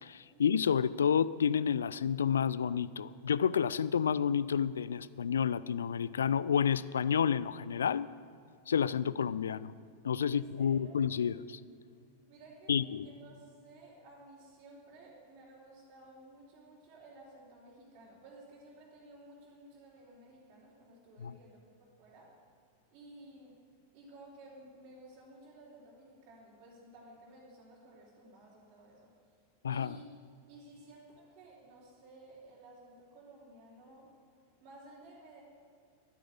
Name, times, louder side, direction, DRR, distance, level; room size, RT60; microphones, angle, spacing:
voice 1, 0.0-8.1 8.7-9.7 10.0-11.6 12.7-13.1 21.2-21.4 29.6-30.0, left 7 dB, 65° left, 18 dB, 0.4 m, -30 dB
voice 2, 10.2-11.0 12.3-22.3 22.9-23.6 23.9-29.1 29.7-30.0 30.5-34.1 34.6-35.4, right 2 dB, 35° right, -8 dB, 3.6 m, -55 dB
12.0 x 10.0 x 7.8 m, 2.3 s
figure-of-eight pair, 90°, 0 cm